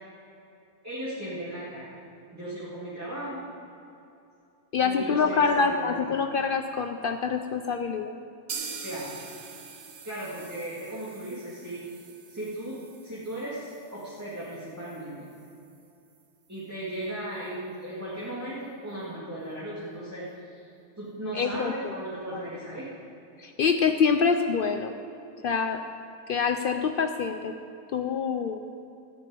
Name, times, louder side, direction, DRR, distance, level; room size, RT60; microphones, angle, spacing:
voice 1, 0.8-1.9 2.3-3.4 4.8-6.0 8.8-9.1 10.0-11.9 12.3-12.8 13.0-15.2 16.5-20.7 21.0-22.9, right 1 dB, 10° right, -9 dB, 2.3 m, -36 dB
voice 2, 4.7-8.1 21.3-21.7 23.4-24.9 25.4-25.8 26.3-27.5 27.9-28.6, left 5 dB, 85° left, 6 dB, 0.4 m, -25 dB
sound 1, 8.5-16.2 16.5-16.6 16.9-17.0 17.5-17.6, right 5 dB, 65° right, 1.4 m, -44 dB
13.5 x 6.4 x 9.0 m, 2.7 s
omnidirectional pair, 1.6 m